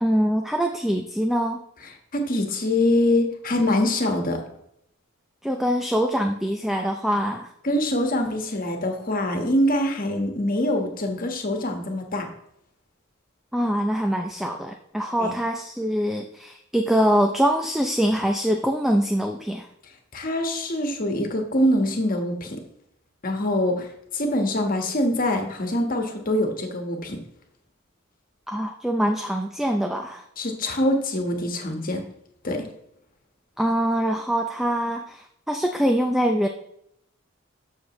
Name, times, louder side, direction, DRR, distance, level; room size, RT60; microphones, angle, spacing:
voice 1, 0.0-1.6 5.4-7.5 13.5-19.7 28.5-30.2 33.6-36.5, equal, ahead, 4 dB, 0.5 m, -24 dB
voice 2, 2.1-4.4 7.6-12.3 15.2-15.3 20.1-22.6 23.2-23.9 24.1-27.2 30.4-32.0 32.4-32.7, left 1 dB, 45° left, 4 dB, 1.4 m, -24 dB
13.0 x 6.5 x 3.1 m, 0.76 s
head